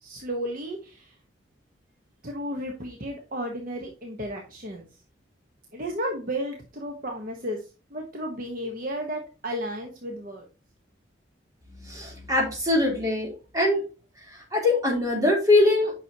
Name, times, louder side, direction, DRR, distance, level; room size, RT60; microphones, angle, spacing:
voice 1, 0.0-1.1 2.2-4.8 5.7-7.6 7.9-10.4, equal, 45° right, 1 dB, 1.3 m, -33 dB
voice 2, 11.9-13.8 14.5-15.9, left 2 dB, 15° right, -3 dB, 3.9 m, -22 dB
9.4 x 6.2 x 3.0 m, 0.33 s
head